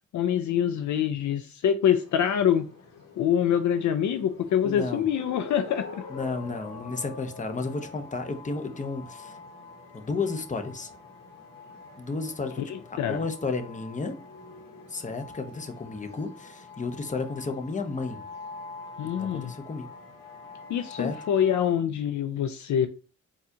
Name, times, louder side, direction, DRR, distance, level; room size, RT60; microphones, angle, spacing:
voice 1, 0.1-2.7 3.2-6.0 12.7-13.2 19.0-19.5 20.7-22.9, left 9 dB, 60° left, 0.4 m, -25 dB
sound 1, 1.8-21.7, left 4 dB, 80° left, 1.0 m, -45 dB
voice 2, 4.6-5.0 6.1-9.4 9.9-10.9 12.0-12.6 13.1-14.2 14.9-18.2 19.0-19.9 21.0-21.2, left 3 dB, 25° left, 0.7 m, -32 dB
4.0 x 2.5 x 2.7 m
supercardioid pair, 55°, 33 cm